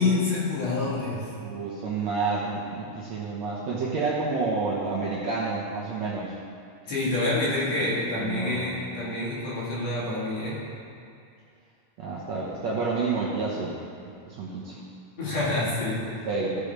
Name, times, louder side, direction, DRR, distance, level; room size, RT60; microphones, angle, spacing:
voice 1, 0.0-1.3 6.9-10.6 15.2-16.0, left 2 dB, 55° left, -7 dB, 2.6 m, -27 dB
voice 2, 1.4-6.4 7.8-8.7 12.0-13.7 14.1-14.8 16.1-16.6, right 4 dB, 70° right, -6 dB, 1.8 m, -29 dB
15.0 x 6.9 x 3.4 m, 2.4 s
omnidirectional pair, 4.2 m